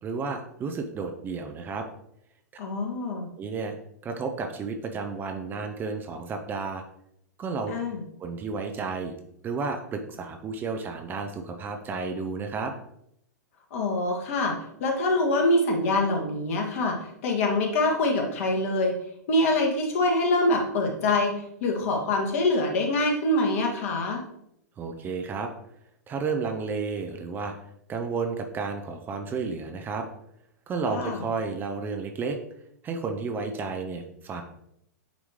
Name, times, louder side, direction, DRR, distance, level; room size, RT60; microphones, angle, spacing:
voice 1, 0.0-1.9 3.4-3.8 4.0-6.8 7.4-7.7 8.2-9.1 9.4-12.7 24.8-25.5 26.1-27.5 27.9-30.1 30.7-32.4 32.8-34.4, right 4 dB, 20° right, 4 dB, 0.6 m, -32 dB
voice 2, 2.6-3.3 7.7-8.0 13.7-14.5 14.8-19.0 19.3-21.3 21.6-24.2 30.9-31.2, left 2 dB, 50° left, 1 dB, 1.5 m, -25 dB
8.8 x 3.0 x 3.6 m, 0.75 s
figure-of-eight pair, 100°, 9 cm